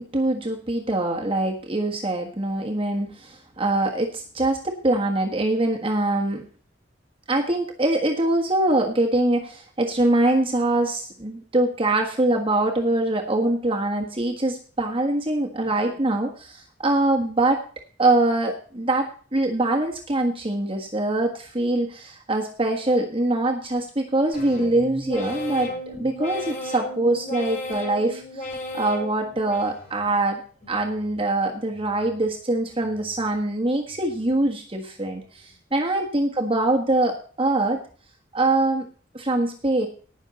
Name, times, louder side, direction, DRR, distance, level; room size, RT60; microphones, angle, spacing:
voice 1, 0.0-6.4 7.3-17.6 18.0-30.4 30.7-37.8 38.3-38.9 39.1-39.9, right 2 dB, 30° right, 1 dB, 1.5 m, -23 dB
sound 1, 24.3-30.2 30.6-31.2 31.7-32.3 32.8-33.4 33.9-34.5 35.0-35.5, left 1 dB, 40° left, 5.9 m, -36 dB
18.5 x 6.3 x 4.1 m, 0.42 s
head